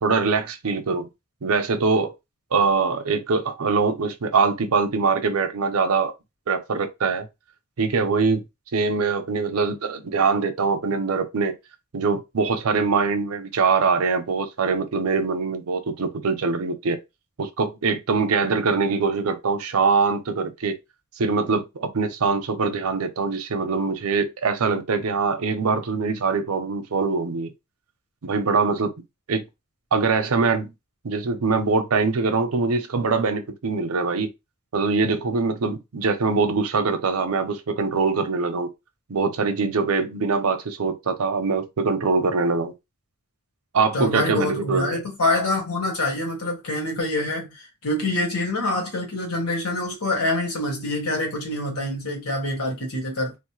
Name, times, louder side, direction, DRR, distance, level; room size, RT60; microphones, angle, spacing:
voice 1, 0.0-1.1 1.4-2.1 2.5-6.1 6.5-7.3 7.8-8.4 8.7-11.5 11.9-17.0 17.4-20.8 21.2-27.5 28.2-28.9 29.3-29.4 29.9-30.7 31.0-34.3 34.7-38.7 39.1-42.7 43.7-45.0, right 4 dB, 90° right, 0.6 m, -23 dB
voice 2, 43.9-53.4, left 2 dB, 90° left, 1.3 m, -26 dB
3.1 x 2.1 x 3.1 m
head